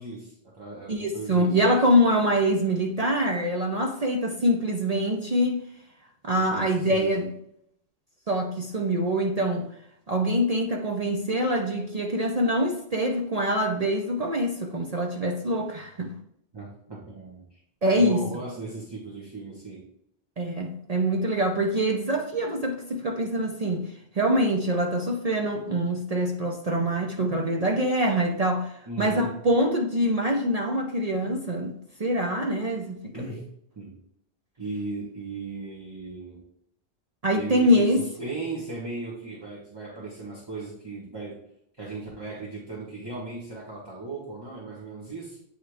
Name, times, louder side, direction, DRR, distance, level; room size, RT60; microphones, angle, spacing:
voice 1, 0.0-1.6 6.3-7.2 16.5-17.6 17.9-19.8 28.9-29.3 33.1-33.4 33.7-33.9 34.6-36.5 37.3-41.4 41.8-45.4, right 3 dB, 20° right, 1.1 m, -37 dB
voice 2, 0.9-5.6 6.2-7.3 8.3-9.7 10.1-16.1 17.8-18.2 20.4-23.9 24.1-33.4 37.2-38.0, equal, 45° right, 0.5 m, -24 dB
8.6 x 3.6 x 3.4 m
omnidirectional pair, 1.2 m